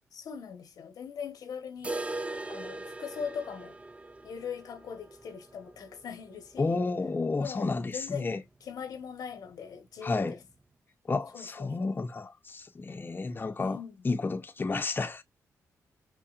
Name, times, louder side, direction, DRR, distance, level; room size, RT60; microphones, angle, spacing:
voice 1, 0.1-2.0 2.5-3.8 4.2-6.9 7.4-8.3 8.6-10.4 11.3-12.0 13.6-14.0, left 7 dB, 75° left, 1.1 m, -40 dB
sound 1, 1.8-7.7 7.9-8.0 8.4-8.5 9.0-9.1 10.0-10.1, right 2 dB, 20° right, 0.4 m, -41 dB
voice 2, 6.6-8.4 10.0-10.4 11.1-13.8 14.0-15.2, left 3 dB, 30° left, 0.7 m, -31 dB
5.6 x 2.2 x 2.4 m
cardioid pair, 60°, 6 cm